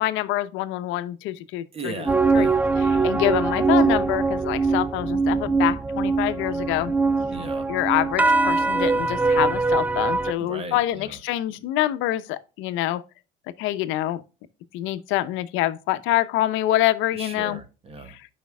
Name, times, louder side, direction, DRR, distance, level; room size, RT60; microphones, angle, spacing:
voice 1, 0.0-2.0 2.3-2.5 2.8-6.9 7.7-13.0 13.6-14.2 14.7-17.6 18.1-18.3, left 14 dB, 70° left, 0.8 m, -26 dB
voice 2, 1.7-2.6 2.9-3.2 7.3-7.7 10.4-11.2 17.1-18.2, right 2 dB, 30° right, 1.4 m, -37 dB
sound 1, 2.1-10.3, right 3 dB, 10° right, 0.3 m, -22 dB
13.0 x 5.1 x 2.3 m
cardioid pair, 120°, 21 cm